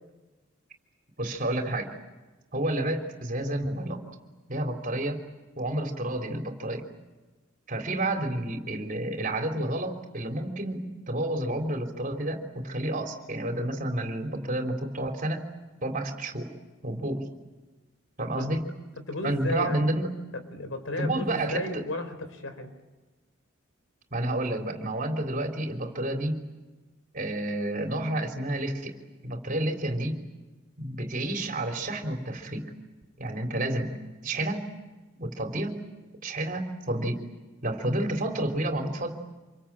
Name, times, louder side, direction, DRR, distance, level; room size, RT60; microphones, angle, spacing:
voice 1, 1.2-1.9 2.5-4.0 4.5-5.2 5.6-6.8 7.7-15.4 15.8-16.5 16.8-17.2 18.2-18.6 19.2-20.1 21.0-21.8 24.1-26.4 27.1-28.9 29.2-30.1 30.8-32.7 33.2-33.9 34.2-34.6 35.2-35.7 36.2-37.2 37.6-39.1, right 1 dB, 45° right, 4 dB, 3.7 m, -30 dB
voice 2, 19.1-19.9 20.3-22.7, left 2 dB, 85° left, 9 dB, 4.0 m, -34 dB
27.5 x 22.5 x 8.8 m, 1.2 s
head